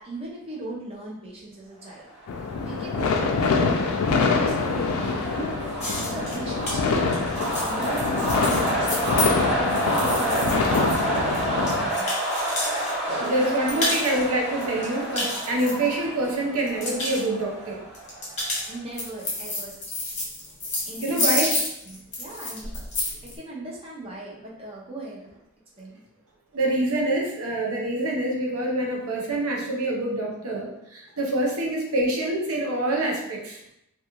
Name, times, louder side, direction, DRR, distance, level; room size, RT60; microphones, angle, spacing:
voice 1, 0.0-2.1 2.3-7.1 7.6-9.1 9.4-12.1 13.1-13.3 13.6-13.9 18.7-19.8 20.9-21.4 21.9-22.9 23.2-25.3 25.8-26.0, right 1 dB, 25° right, -4 dB, 0.6 m, -37 dB
sound 1, 2.2-18.8, right 1 dB, 10° right, 1.0 m, -30 dB
sound 2, 2.3-11.9, left 4 dB, 80° left, 0.3 m, -25 dB
sound 3, 5.8-12.9 13.2-14.2 14.6-16.3 16.6-17.2 17.9-23.3, left 2 dB, 30° left, 0.8 m, -30 dB
voice 2, 13.2-17.8 21.0-21.5 26.5-33.6, right 1 dB, 85° right, -1 dB, 0.6 m, -26 dB
2.3 x 2.3 x 2.9 m, 0.80 s
head